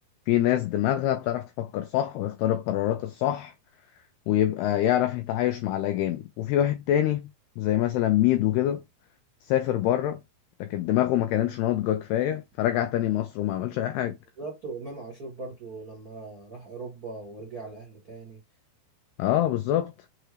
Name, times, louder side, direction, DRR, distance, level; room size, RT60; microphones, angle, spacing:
voice 1, 0.3-3.5 4.3-7.3 7.6-8.8 9.5-10.2 10.6-14.2 19.2-19.9, left 12 dB, 90° left, 2.2 m, -25 dB
voice 2, 14.4-18.4, right 3 dB, 65° right, 0.9 m, -39 dB
6.8 x 2.3 x 3.2 m
omnidirectional pair, 5.1 m